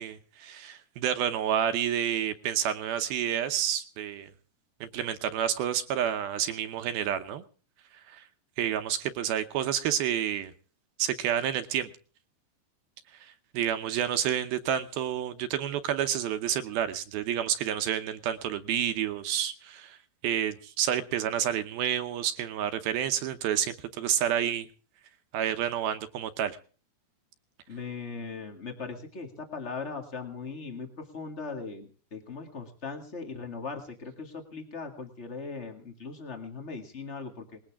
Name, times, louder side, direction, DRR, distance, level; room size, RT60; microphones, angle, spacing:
voice 1, 0.0-4.3 4.8-7.4 8.1-8.2 8.6-10.5 11.0-11.9 13.2-20.0 20.2-24.7 25.3-26.6, right 10 dB, 75° right, 10 dB, 2.4 m, -29 dB
voice 2, 27.7-37.6, left 4 dB, 80° left, 3 dB, 0.6 m, -39 dB
20.5 x 17.5 x 3.6 m, 0.40 s
omnidirectional pair, 5.1 m